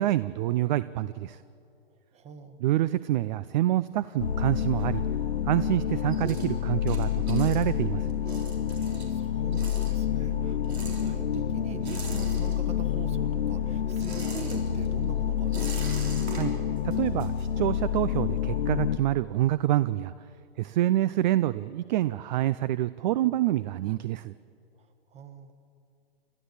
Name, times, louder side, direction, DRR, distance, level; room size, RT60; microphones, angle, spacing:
voice 1, 0.0-1.4 2.6-5.0 5.5-8.1 16.3-16.5 16.8-20.1 20.6-24.3, right 14 dB, 45° right, 17 dB, 0.5 m, -27 dB
voice 2, 2.1-2.6 9.1-16.2 24.8-25.5, right 5 dB, 20° right, 9 dB, 1.5 m, -43 dB
sound 1, 3.8-5.5 5.8-13.0 13.3-18.0, right 3 dB, 85° right, 4.2 m, -43 dB
sound 2, 4.2-19.0, left 9 dB, 90° left, 0.8 m, -28 dB
29.5 x 13.0 x 8.4 m, 2.5 s
hypercardioid pair, 125°, 31 cm